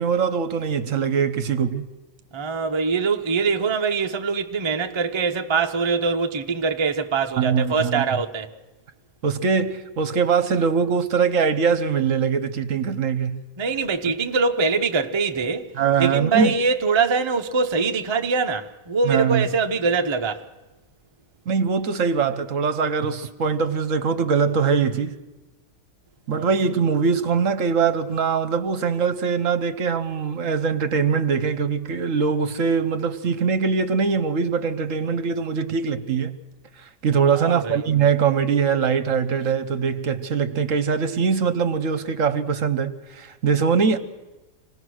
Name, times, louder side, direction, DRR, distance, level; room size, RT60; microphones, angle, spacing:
voice 1, 0.0-1.9 7.4-8.0 9.2-13.4 15.7-16.5 19.0-19.5 21.5-25.2 26.3-36.4 36.8-44.0, right 6 dB, 60° right, 1.1 m, -22 dB
voice 2, 2.3-8.5 13.6-15.7 16.0-20.4 26.4-26.5 37.3-37.8, right 4 dB, 30° right, 0.5 m, -23 dB
26.0 x 18.5 x 6.3 m
omnidirectional pair, 1.8 m